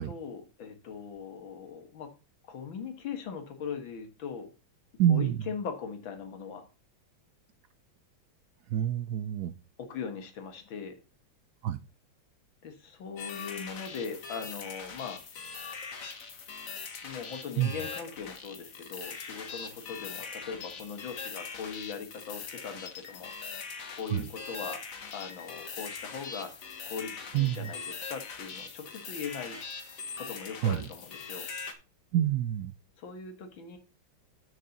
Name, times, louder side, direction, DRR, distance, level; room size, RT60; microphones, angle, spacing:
voice 1, 0.0-2.1 2.5-4.5 5.1-6.6 9.8-11.0 12.6-15.2 17.0-23.3 23.9-24.8 25.1-29.6 30.2-31.5 33.0-33.8, left 6 dB, 75° left, 7 dB, 2.2 m, -40 dB
voice 2, 5.0-5.4 8.7-9.5 11.6-11.8 17.6-17.7 24.1-24.2 27.3-27.7 30.6-30.8 32.1-32.7, right 11 dB, 75° right, 12 dB, 0.9 m, -27 dB
sound 1, 13.2-31.7, left 5 dB, 45° left, 1.5 m, -42 dB
6.7 x 6.6 x 5.7 m, 0.31 s
omnidirectional pair, 2.2 m